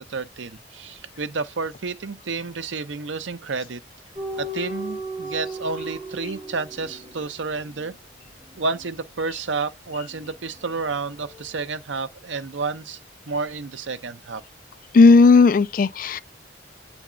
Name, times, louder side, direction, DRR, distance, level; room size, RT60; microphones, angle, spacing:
voice 1, 0.0-3.8 4.4-7.9 8.5-13.0 13.3-14.4, right 4 dB, 75° right, 0.7 m, -30 dB
sound 1, 4.2-10.9 11.2-11.5, right 1 dB, 20° right, 2.4 m, -37 dB
voice 2, 14.9-16.2, left 4 dB, 45° left, 0.3 m, -14 dB
8.3 x 3.5 x 4.9 m
head